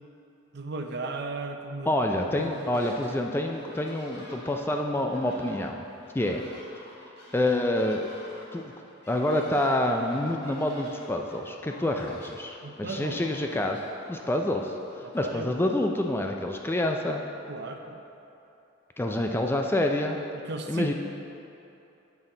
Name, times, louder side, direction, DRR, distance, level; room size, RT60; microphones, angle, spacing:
voice 1, 0.5-1.9 2.3-2.8 12.6-13.2 15.0-15.7 17.5-18.0 20.3-20.9, right 3 dB, 55° right, 4 dB, 0.6 m, -36 dB
voice 2, 1.9-5.8 6.1-6.4 7.3-8.1 8.5-8.7 9.1-13.8 14.1-14.7 15.1-17.2 19.0-20.2 20.7-20.9, left 1 dB, 10° left, 3 dB, 0.3 m, -27 dB
sound 1, 2.2-3.2 3.4-15.8, left 1 dB, 55° left, 1.5 m, -49 dB
9.5 x 6.3 x 3.8 m, 2.9 s
head